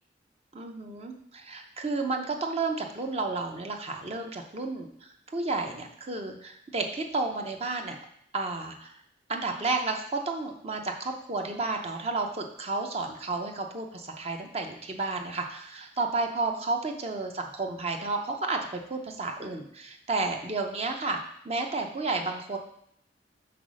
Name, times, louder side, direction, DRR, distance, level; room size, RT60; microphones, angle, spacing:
voice 1, 0.5-4.9 5.3-8.0 8.3-8.9 9.3-21.2 21.4-22.6, right 3 dB, 35° right, 3 dB, 0.7 m, -32 dB
5.9 x 4.0 x 6.2 m, 0.68 s
head